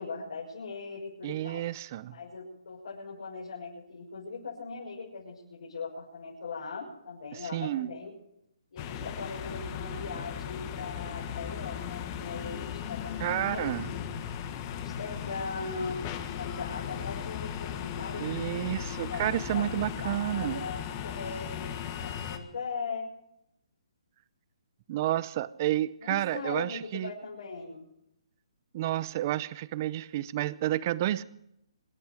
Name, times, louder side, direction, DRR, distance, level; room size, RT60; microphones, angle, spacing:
voice 1, 0.0-1.6 2.1-8.1 8.7-14.0 14.7-16.0 16.3-19.7 20.0-23.1 26.0-27.8, left 4 dB, 70° left, -4 dB, 6.1 m, -40 dB
voice 2, 1.2-2.1 7.3-7.9 13.2-13.9 18.2-20.6 24.9-27.1 28.7-31.2, right 14 dB, 30° right, 19 dB, 0.6 m, -30 dB
sound 1, 8.8-22.4, left 9 dB, 25° left, 1.4 m, -37 dB
25.5 x 11.5 x 5.0 m, 0.81 s
hypercardioid pair, 160°, 3 cm